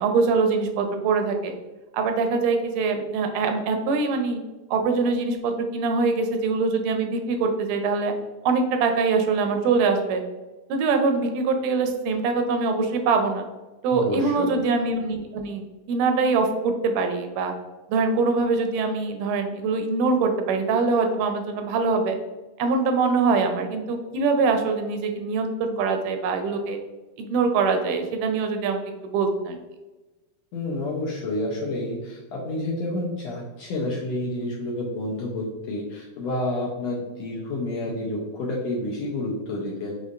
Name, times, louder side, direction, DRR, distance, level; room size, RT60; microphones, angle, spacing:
voice 1, 0.0-1.5 1.9-4.4 4.7-8.1 8.4-10.2 10.7-13.4 13.8-17.5 17.9-22.1 22.6-26.8 27.2-29.6, right 4 dB, 85° right, 5 dB, 2.1 m, -23 dB
voice 2, 13.9-14.5 30.5-40.0, left 1 dB, 80° left, -3 dB, 1.6 m, -29 dB
5.3 x 3.3 x 2.4 m, 1.1 s
omnidirectional pair, 3.6 m